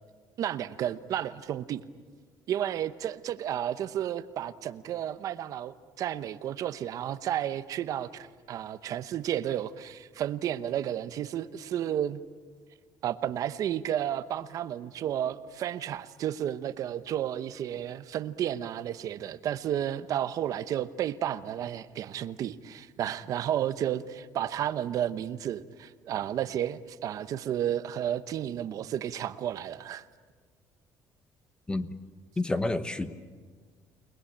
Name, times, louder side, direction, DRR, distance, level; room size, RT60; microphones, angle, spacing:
voice 1, 0.4-1.8 2.5-12.2 13.0-30.0, right 10 dB, 55° right, 13 dB, 0.9 m, -32 dB
voice 2, 32.4-33.1, left 2 dB, 15° left, 12 dB, 1.0 m, -29 dB
30.0 x 20.0 x 8.7 m, 1.5 s
cardioid pair, 145°, 7 cm